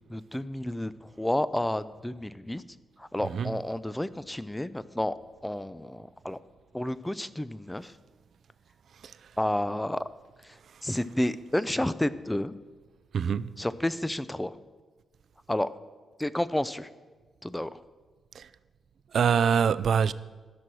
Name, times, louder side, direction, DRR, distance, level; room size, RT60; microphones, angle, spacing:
voice 1, 0.1-2.6 3.0-5.1 5.4-6.4 6.7-7.9 9.4-10.0 10.4-10.5 10.8-12.5 13.6-14.5 15.5-15.7 16.2-16.9 17.4-17.8, left 1 dB, 10° left, 0.4 m, -30 dB
voice 2, 3.2-3.6 9.0-9.3 10.7-10.8 13.1-13.6 18.3-18.5 19.1-20.1, right 7 dB, 65° right, 0.4 m, -25 dB
13.0 x 6.3 x 6.1 m
cardioid pair, 100°, 0 cm